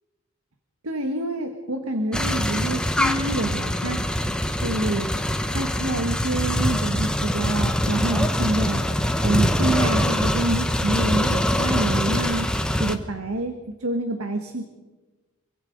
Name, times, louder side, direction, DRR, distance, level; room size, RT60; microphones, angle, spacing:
voice 1, 0.8-4.2 4.6-5.1 5.5-12.5 12.8-14.6, right 2 dB, 85° right, 7 dB, 1.5 m, -27 dB
sound 1, 2.1-12.9, equal, 5° left, 1.1 m, -23 dB
25.5 x 24.0 x 5.3 m, 1.3 s
head